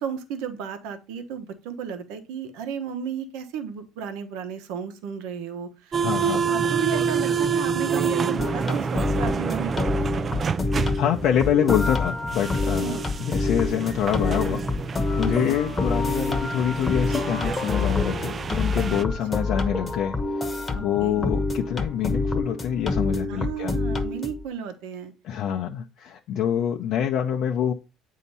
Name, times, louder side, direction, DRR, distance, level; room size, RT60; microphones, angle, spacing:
voice 1, 0.0-9.8 12.8-13.0 15.2-15.5 18.9-19.0 19.3-19.5 20.7-21.3 23.3-25.1, right 7 dB, 75° right, 1.0 m, -33 dB
sound 1, 5.9-19.0, right 6 dB, 30° right, 0.4 m, -28 dB
voice 2, 6.0-6.4 11.0-14.6 15.2-23.7 25.2-27.7, left 9 dB, 60° left, 0.6 m, -26 dB
sound 2, 8.4-24.4, left 3 dB, 15° left, 1.0 m, -27 dB
8.1 x 2.8 x 5.4 m
supercardioid pair, 105°, 0 cm